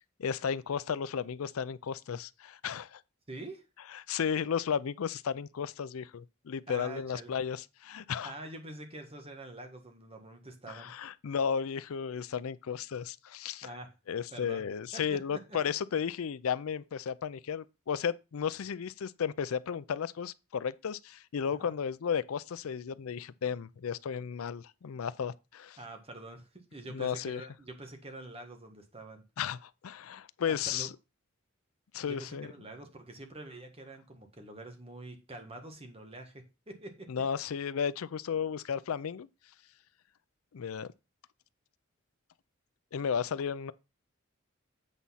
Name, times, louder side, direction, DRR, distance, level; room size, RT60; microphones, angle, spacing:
voice 1, 0.2-3.0 3.9-8.3 10.7-13.7 14.1-25.8 26.9-27.4 29.4-30.9 31.9-32.5 37.1-39.3 40.5-40.9 42.9-43.7, left 7 dB, 80° left, 0.4 m, -34 dB
voice 2, 3.3-3.6 6.7-7.3 8.2-10.9 13.6-13.9 14.3-14.6 14.9-15.6 21.6-21.7 25.8-29.2 30.5-30.9 32.1-37.1, right 2 dB, 25° right, 1.5 m, -46 dB
8.3 x 4.1 x 5.6 m
head